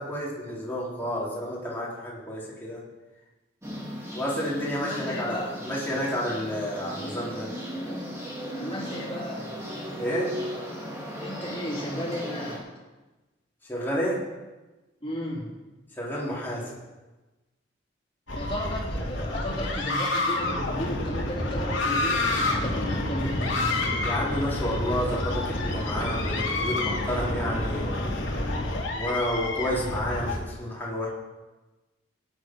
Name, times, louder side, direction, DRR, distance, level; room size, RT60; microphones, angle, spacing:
voice 1, 0.0-2.8 4.1-7.5 10.0-10.3 13.7-14.2 16.0-16.7 24.0-28.1 28.9-31.1, equal, 10° left, -6 dB, 3.7 m, -30 dB
sound 1, 3.6-12.6, equal, 15° right, 3.2 m, -36 dB
voice 2, 4.8-5.5 8.6-9.7 11.2-12.7 15.0-15.6 18.4-23.7, equal, 25° left, -5 dB, 3.6 m, -34 dB
sound 2, 18.3-30.4, left 2 dB, 75° left, 2.6 m, -30 dB
sound 3, 20.4-28.7, left 1 dB, 55° left, 2.7 m, -33 dB
17.5 x 10.0 x 4.7 m, 1.1 s
head